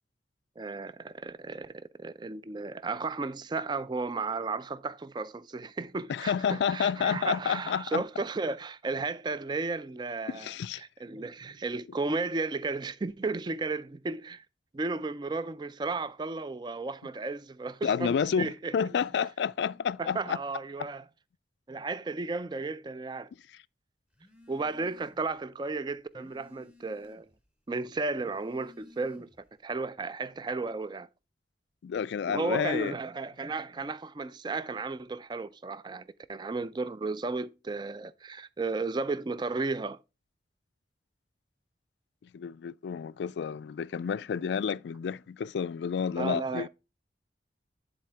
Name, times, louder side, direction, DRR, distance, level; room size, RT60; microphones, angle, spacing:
voice 1, 0.6-10.5 10.8-14.4 14.7-18.7 20.0-21.0 21.7-23.3 24.5-27.3 27.7-29.3 29.6-31.1 32.3-40.0 46.2-46.7, right 3 dB, 25° right, 0.4 m, -34 dB
voice 2, 6.1-8.0 10.3-10.8 17.8-20.4 31.8-32.9 42.2-46.7, left 7 dB, 75° left, 0.3 m, -30 dB
Telephone, 24.1-25.4 25.7-27.4 28.0-29.5, left 2 dB, 5° right, 0.9 m, -57 dB
10.5 x 4.1 x 3.3 m
head